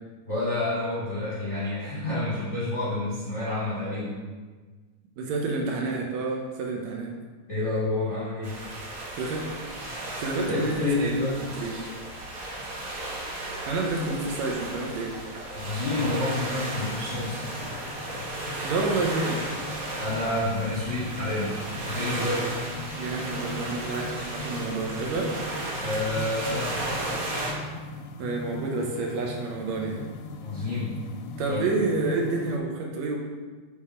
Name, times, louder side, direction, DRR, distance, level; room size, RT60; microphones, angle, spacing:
voice 1, 0.2-4.2 7.5-8.6 10.5-11.4 15.5-17.4 20.0-22.5 25.8-26.9 30.4-31.0 31.5-31.6, left 2 dB, 40° left, -10 dB, 1.0 m, -29 dB
voice 2, 5.2-7.1 9.2-9.5 10.2-11.1 11.6-11.9 13.7-15.2 18.6-19.4 23.0-25.3 28.2-30.0 31.4-33.2, right 3 dB, 75° right, 0 dB, 1.9 m, -29 dB
sound 1, 8.4-27.5, right 1 dB, 60° right, 0.9 m, -35 dB
sound 2, 17.0-32.6, left 2 dB, 80° left, 1.6 m, -41 dB
6.7 x 3.6 x 4.2 m, 1.4 s
omnidirectional pair, 3.3 m